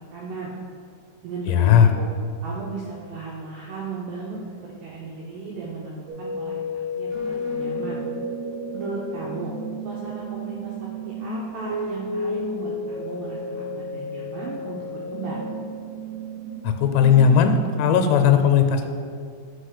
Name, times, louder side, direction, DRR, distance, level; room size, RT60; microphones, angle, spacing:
voice 1, 0.1-0.6 1.2-2.1 2.4-8.0 8.7-9.5 9.8-15.5, right 3 dB, 90° right, -4 dB, 2.3 m, -35 dB
voice 2, 1.5-1.9 16.6-18.9, left 7 dB, 90° left, 6 dB, 3.3 m, -17 dB
sound 1, 6.1-18.1, left 1 dB, 70° right, 2.4 m, -32 dB
6.2 x 5.1 x 6.5 m, 2.2 s
omnidirectional pair, 5.9 m